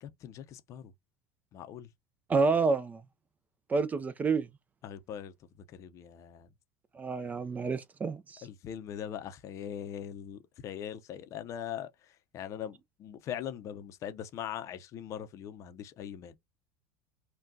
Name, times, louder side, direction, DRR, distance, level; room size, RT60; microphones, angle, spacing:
voice 1, 0.0-0.9 1.5-1.9 4.8-5.3 5.7-6.5 8.4-16.4, left 9 dB, 45° left, 0.5 m, -41 dB
voice 2, 2.3-3.0 3.7-4.5 6.9-8.4, right 4 dB, 20° right, 0.4 m, -29 dB
3.5 x 2.2 x 2.5 m
supercardioid pair, 105°, 7 cm